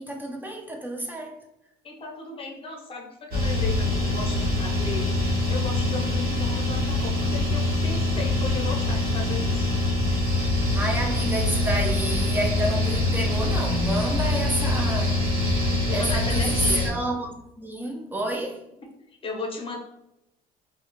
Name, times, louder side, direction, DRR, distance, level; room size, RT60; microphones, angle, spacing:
voice 1, 0.0-1.4 10.7-15.3 15.9-18.7, right 1 dB, 10° right, 0.5 m, -29 dB
voice 2, 1.8-9.7 11.7-11.8 15.6-16.9 19.2-19.8, left 4 dB, 35° left, 0.8 m, -36 dB
sound 1, 3.3-16.9, left 2 dB, 60° right, 1.0 m, -24 dB
2.3 x 2.1 x 2.9 m
cardioid pair, 110°, 17 cm